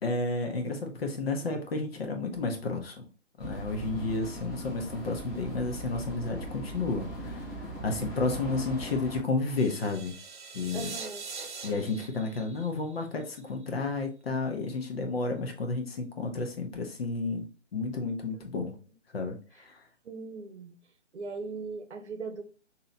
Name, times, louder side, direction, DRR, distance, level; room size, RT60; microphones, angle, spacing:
voice 1, 0.0-3.1 3.4-10.2 10.5-10.9 11.6-18.8 19.1-19.8, left 3 dB, 55° left, 1.0 m, -32 dB
sound 1, 3.4-9.2, right 1 dB, 5° left, 0.8 m, -39 dB
sound 2, 9.6-13.6, right 5 dB, 45° right, 0.5 m, -43 dB
voice 2, 10.7-11.3 18.3-18.4 20.0-20.8 21.1-22.4, right 4 dB, 65° right, 0.8 m, -39 dB
3.1 x 2.8 x 3.8 m
hypercardioid pair, 155°, 36 cm